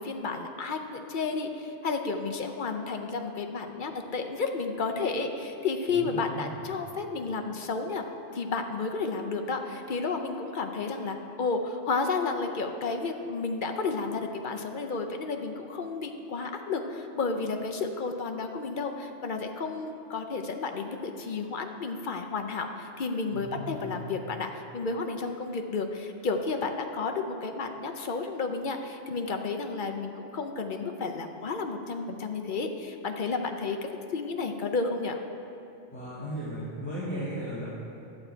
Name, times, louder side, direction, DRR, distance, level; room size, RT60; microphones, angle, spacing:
voice 1, 0.0-8.0 8.3-33.8 34.1-35.2, left 4 dB, 50° left, 4 dB, 0.7 m, -32 dB
voice 2, 5.9-6.7 23.3-24.2 35.9-37.7, equal, 10° left, -11 dB, 1.9 m, -36 dB
11.5 x 8.5 x 4.4 m, 2.8 s
omnidirectional pair, 1.2 m